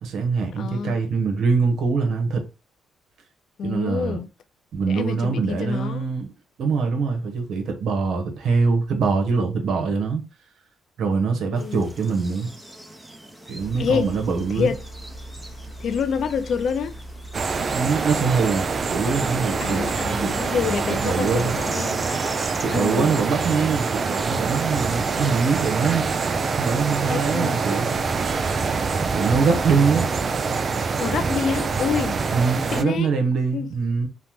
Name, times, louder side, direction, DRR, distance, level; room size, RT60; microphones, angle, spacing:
voice 1, 0.0-2.4 3.6-4.2 4.7-6.3 6.6-10.2 11.0-12.5 13.5-14.7 17.7-19.9 20.1-20.4 21.0-21.6 22.6-26.1 26.5-27.9 29.1-30.1 32.3-34.1, right 5 dB, 70° right, 0.8 m, -23 dB
voice 2, 0.6-1.0 3.6-4.3 4.9-6.1 11.4-11.8 13.8-14.1 14.5-14.8 15.8-16.9 19.6-22.0 22.7-23.2 27.1-27.7 31.0-32.2 32.7-33.1 33.5-33.7, left 6 dB, 65° left, 0.3 m, -27 dB
sound 1, 11.6-27.1, right 1 dB, 5° right, 0.6 m, -43 dB
sound 2, 13.6-21.6, right 1 dB, 85° left, 0.9 m, -39 dB
sound 3, 17.3-32.8, right 4 dB, 45° right, 0.3 m, -25 dB
3.2 x 2.0 x 2.8 m
cardioid pair, 90°, 0 cm